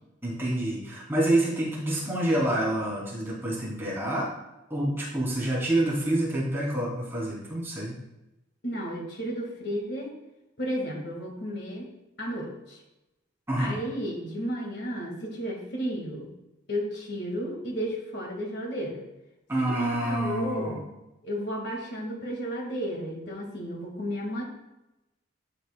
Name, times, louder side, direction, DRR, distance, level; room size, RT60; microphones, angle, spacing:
voice 1, 0.2-4.3 4.7-7.9 13.5-13.8 19.5-20.8, right 1 dB, 10° right, -6 dB, 2.9 m, -27 dB
voice 2, 8.6-10.2 10.6-11.9 12.2-12.8 13.6-16.3 16.7-19.0 19.7-20.8 21.2-24.4, equal, 55° left, 0 dB, 1.8 m, -33 dB
12.5 x 6.7 x 2.2 m, 0.96 s
head